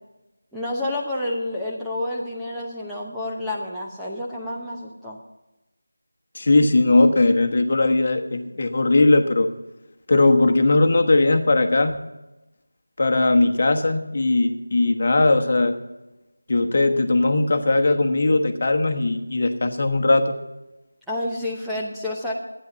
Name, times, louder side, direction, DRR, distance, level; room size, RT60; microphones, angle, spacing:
voice 1, 0.5-5.2 21.1-22.3, left 1 dB, ahead, -7 dB, 0.8 m, -29 dB
voice 2, 6.3-9.5 10.1-12.0 13.0-15.7 16.5-20.3, left 2 dB, 40° left, 6 dB, 1.1 m, -19 dB
12.0 x 9.7 x 5.7 m, 1.0 s
figure-of-eight pair, 170°, 0 cm